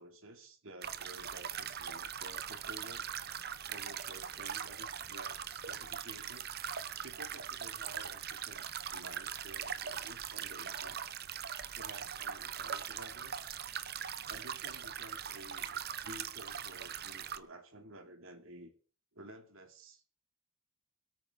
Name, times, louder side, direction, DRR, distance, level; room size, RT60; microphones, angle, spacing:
voice 1, 0.0-3.1 3.7-6.5 7.0-11.0 11.7-13.5 14.3-18.7 19.1-20.2, right 1 dB, 65° right, 6 dB, 2.9 m, -52 dB
sound 1, 0.8-17.4, right 8 dB, 45° right, 0.9 m, -41 dB
24.0 x 9.1 x 4.0 m, 0.39 s
head